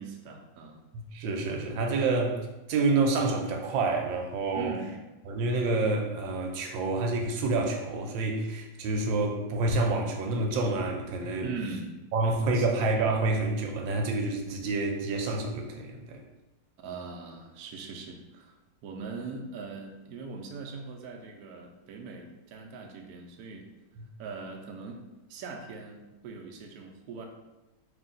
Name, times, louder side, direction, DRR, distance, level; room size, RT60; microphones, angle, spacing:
voice 1, 0.0-0.8 4.5-5.1 11.4-11.9 12.5-12.7 16.8-23.7 24.2-25.0 25.3-27.3, right 4 dB, 70° right, 2 dB, 0.9 m, -41 dB
voice 2, 0.9-2.4 2.7-4.8 5.3-11.5 12.1-16.2, right 3 dB, 90° right, 2 dB, 1.3 m, -28 dB
3.3 x 2.9 x 3.8 m, 1.0 s
omnidirectional pair, 2.0 m